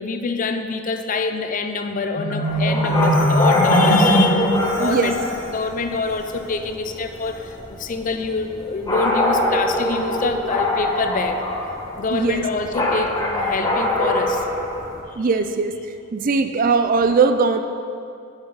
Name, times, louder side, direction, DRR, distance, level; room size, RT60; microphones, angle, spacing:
voice 1, 0.0-11.4 12.0-14.5, left 4 dB, 40° left, 7 dB, 0.5 m, -26 dB
Marimba xylophone, 2.2-5.5, equal, 75° left, 1.3 m, -20 dB
sound 1, 2.4-15.0, left 1 dB, 20° left, 1.4 m, -24 dB
voice 2, 4.8-5.1 12.1-12.4 15.1-15.7 16.1-17.6, right 4 dB, 40° right, 8 dB, 0.4 m, -19 dB
10.5 x 8.0 x 4.0 m, 2.4 s
head